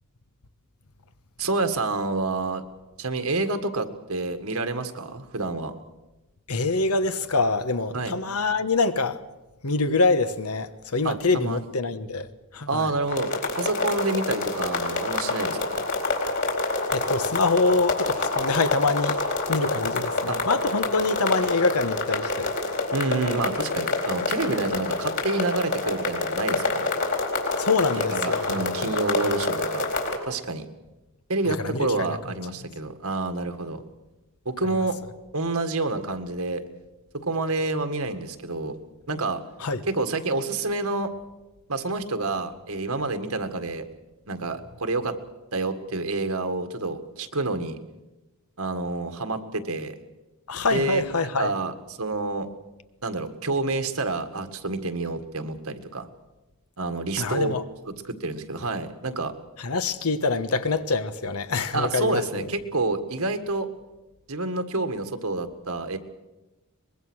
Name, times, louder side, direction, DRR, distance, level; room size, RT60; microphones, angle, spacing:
voice 1, 1.4-2.6 3.0-5.7 7.9-8.1 11.0-11.7 12.7-15.8 20.3-20.4 22.9-26.9 28.0-29.9 30.3-30.6 31.3-33.8 34.5-35.0 35.3-36.6 37.3-38.8 39.1-39.4 39.9-41.1 41.7-43.8 44.3-45.2 45.5-47.8 48.6-50.0 50.7-52.5 53.0-56.1 56.8-57.6 57.8-59.3 61.7-63.7 64.3-66.0, right 3 dB, 75° right, 1.9 m, -28 dB
voice 2, 6.5-9.2 9.6-12.3 12.5-12.9 16.9-19.2 19.5-22.5 27.6-28.5 28.7-28.9 29.2-29.4 31.5-32.2 39.6-39.8 50.5-51.5 57.2-57.6 59.6-62.5, left 3 dB, 80° left, 1.3 m, -25 dB
sound 1, 13.1-30.2, left 3 dB, 50° left, 4.4 m, -27 dB
23.5 x 21.5 x 6.4 m
head